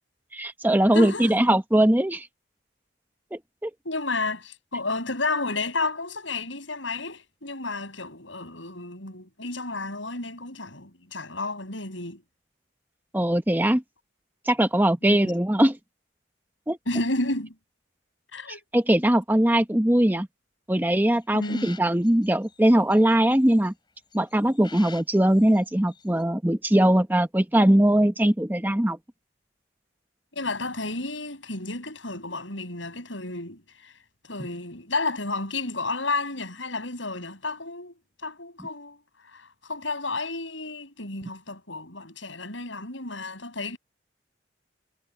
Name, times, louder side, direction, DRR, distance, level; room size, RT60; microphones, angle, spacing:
voice 1, 0.3-2.3 3.3-3.7 13.1-13.8 14.5-15.8 16.7-16.8 18.7-20.3 20.7-23.7 24.1-29.0, right 1 dB, 10° right, 0.9 m, -21 dB
voice 2, 0.9-1.4 3.8-12.2 15.0-15.4 16.9-17.5 18.3-18.6 21.3-21.7 30.3-33.9 34.3-39.0 39.3-43.8, left 3 dB, 75° left, 7.9 m, -32 dB
sound 1, 21.1-23.7 24.1-25.6 25.9-26.2, left 5 dB, 25° left, 6.5 m, -47 dB
head